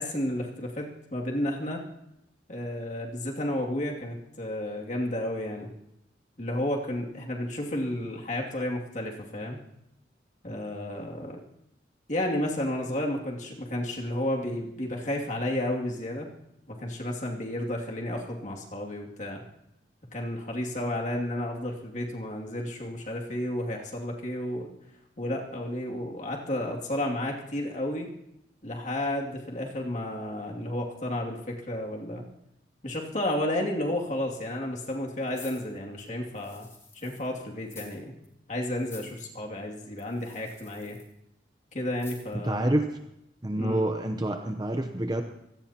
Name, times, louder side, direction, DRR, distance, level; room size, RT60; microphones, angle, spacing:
voice 1, 0.0-1.8 2.5-5.7 6.4-9.6 10.4-11.4 12.1-16.3 16.7-19.4 20.1-24.7 25.2-28.1 28.6-32.3 32.8-36.7 36.9-38.1 38.5-41.0 41.7-42.8 43.5-43.8, left 1 dB, 40° left, -1 dB, 2.5 m, -32 dB
sound 1, 35.3-37.3 37.6-38.0 38.2-38.3 38.8-39.2 40.0-41.1 41.9-42.5 42.9-43.0, left 4 dB, 15° left, 2.5 m, -50 dB
voice 2, 42.3-43.0 43.4-45.2, right 1 dB, 20° right, 6 dB, 0.8 m, -28 dB
25.0 x 17.5 x 2.9 m, 0.82 s
head